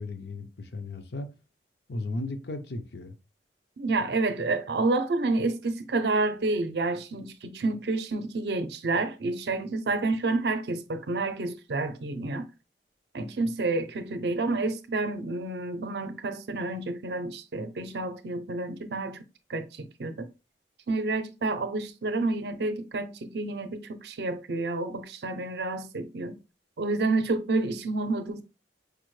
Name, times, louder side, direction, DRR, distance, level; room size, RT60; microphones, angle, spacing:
voice 1, 0.0-1.3 1.9-3.1, left 2 dB, 70° left, 0.6 m, -35 dB
voice 2, 3.8-12.5 13.1-19.2 19.5-20.3 20.9-26.4 26.8-28.4, right 3 dB, 70° right, 0.5 m, -29 dB
4.8 x 2.1 x 3.1 m
head